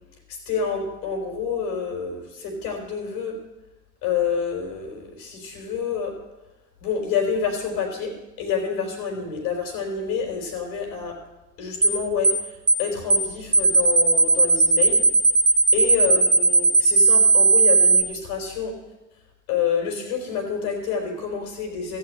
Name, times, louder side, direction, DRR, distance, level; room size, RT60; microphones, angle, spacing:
voice 1, 0.3-3.4 4.0-6.1 6.8-11.2 11.6-15.1 15.7-18.7 19.5-22.0, left 6 dB, 80° left, 1 dB, 4.3 m, -28 dB
sound 1, 11.8-12.0 12.2-12.4 12.7-12.8 13.1-13.3 13.5-18.0, right 3 dB, 30° right, 1.3 m, -16 dB
15.0 x 6.2 x 8.7 m, 1.0 s
supercardioid pair, 75°, 36 cm